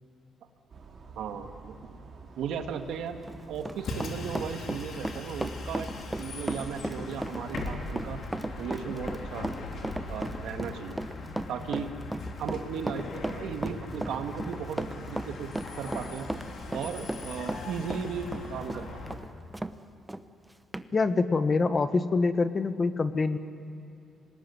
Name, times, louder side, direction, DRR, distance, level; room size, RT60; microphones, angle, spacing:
sound 1, 0.7-10.3, right 4 dB, 45° right, 4.0 m, -48 dB
voice 1, 1.2-1.8 2.4-3.2 3.5-5.9 6.2-8.2 8.6-9.5 10.1-11.0 11.5-11.9 12.4-16.3 16.7-19.2, right 7 dB, 80° right, 6 dB, 1.9 m, -36 dB
Run, 3.1-19.7 20.1-20.2 20.7-20.9, right 1 dB, 10° right, 0.9 m, -36 dB
Bus, 3.8-19.2, left 3 dB, 60° left, 3.7 m, -40 dB
voice 2, 20.9-23.4, left 4 dB, 35° left, 11 dB, 1.3 m, -25 dB
25.0 x 19.5 x 9.7 m, 2.7 s
cardioid pair, 90°, 0 cm